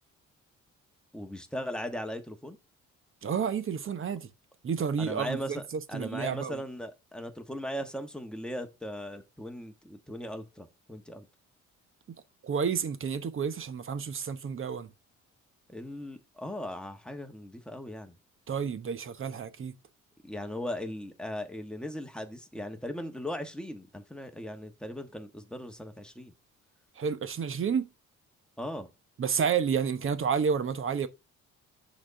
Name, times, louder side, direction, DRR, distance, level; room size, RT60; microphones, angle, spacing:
voice 1, 1.1-2.6 5.0-5.6 5.9-11.3 15.7-18.1 20.2-26.3 28.6-28.9, equal, 5° left, 1.3 m, -38 dB
voice 2, 3.2-4.3 4.6-6.6 12.4-14.9 18.5-19.7 27.0-27.9 29.2-31.1, right 6 dB, 45° right, 0.9 m, -30 dB
6.2 x 4.2 x 6.1 m
cardioid pair, 90°, 30 cm